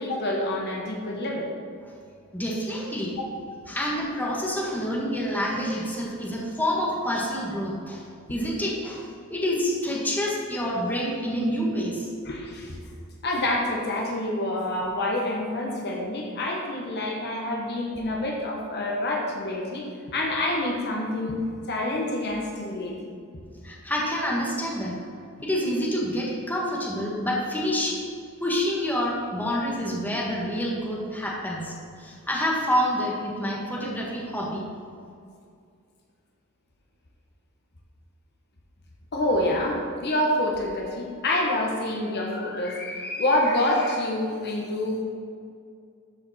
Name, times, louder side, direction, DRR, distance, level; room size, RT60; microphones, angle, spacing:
voice 1, 0.0-1.5 3.2-3.3 12.2-12.8 13.2-21.4 21.7-23.1 39.1-45.0, left 1 dB, 50° left, 0 dB, 1.2 m, -27 dB
voice 2, 2.3-3.1 3.7-8.0 8.3-12.1 23.6-25.0 25.4-28.0 28.4-34.7, equal, 10° left, -4 dB, 1.5 m, -27 dB
13.0 x 5.1 x 4.2 m, 2.3 s
head